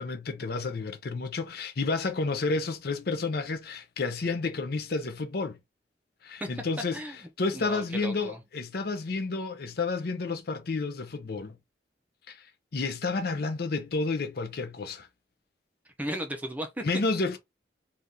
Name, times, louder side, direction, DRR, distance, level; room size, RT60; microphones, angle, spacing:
voice 1, 0.0-5.6 6.2-7.0 7.4-11.6 12.3-15.1 16.8-17.4, left 3 dB, 55° left, 0.5 m, -30 dB
voice 2, 6.9-8.4 16.0-16.8, equal, 10° right, 0.5 m, -36 dB
2.8 x 2.4 x 3.5 m
head